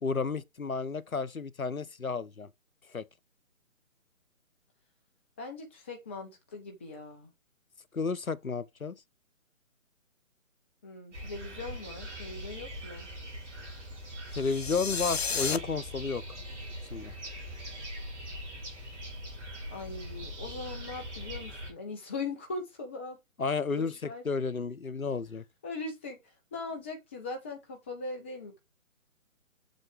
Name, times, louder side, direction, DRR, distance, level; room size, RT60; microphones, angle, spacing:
voice 1, 0.0-2.5 2.9-3.1 7.9-9.0 14.3-16.2 16.9-17.1 23.4-25.4, left 4 dB, 80° left, 1.0 m, -32 dB
voice 2, 5.4-7.3 10.8-13.1 19.7-23.2 23.7-24.2 25.6-26.2 26.5-28.6, left 3 dB, 10° left, 0.7 m, -40 dB
sound 1, 11.1-21.7, equal, 60° right, 5.0 m, -41 dB
sound 2, 14.4-15.6, left 6 dB, 50° left, 0.9 m, -32 dB
7.5 x 7.0 x 3.4 m
figure-of-eight pair, 140°, 41 cm